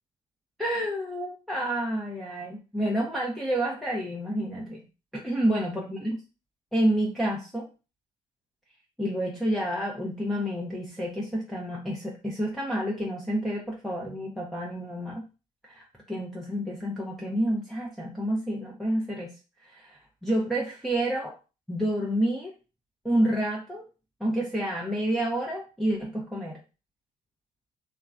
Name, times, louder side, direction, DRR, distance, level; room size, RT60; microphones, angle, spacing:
voice 1, 0.6-4.8 5.2-6.2 6.7-7.7 9.0-15.3 15.6-19.3 19.6-21.3 21.7-22.5 23.0-23.8 24.2-26.6, right 1 dB, ahead, -4 dB, 0.7 m, -29 dB
3.0 x 2.2 x 2.4 m, 0.31 s
hypercardioid pair, 45°, 18 cm